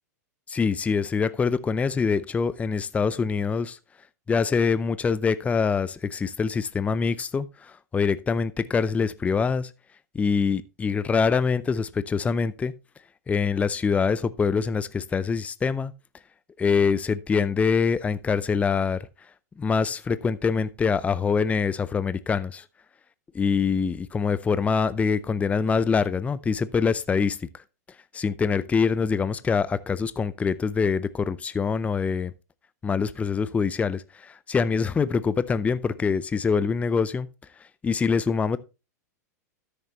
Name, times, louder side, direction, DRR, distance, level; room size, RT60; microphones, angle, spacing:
voice 1, 0.5-3.8 4.3-9.7 10.1-12.7 13.3-15.9 16.6-19.1 19.6-22.6 23.3-27.6 28.1-32.3 32.8-37.3 37.8-38.6, left 5 dB, 15° left, 0.5 m, -24 dB
13.0 x 6.6 x 3.0 m
hypercardioid pair, 105°, 9 cm